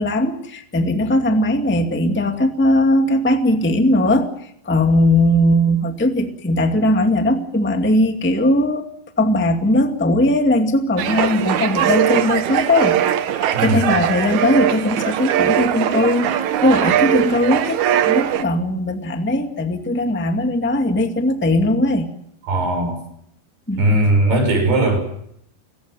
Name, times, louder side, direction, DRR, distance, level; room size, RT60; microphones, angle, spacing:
voice 1, 0.0-4.3 4.6-8.9 9.2-13.0 13.4-22.1 23.7-24.0, left 1 dB, 5° left, 5 dB, 0.9 m, -19 dB
sound 1, 11.0-18.4, right 10 dB, 65° right, 2.1 m, -20 dB
voice 2, 13.5-13.9 22.4-23.0 23.8-25.0, right 1 dB, 90° right, 5 dB, 8.3 m, -18 dB
29.5 x 16.5 x 7.4 m, 0.71 s
omnidirectional pair, 4.5 m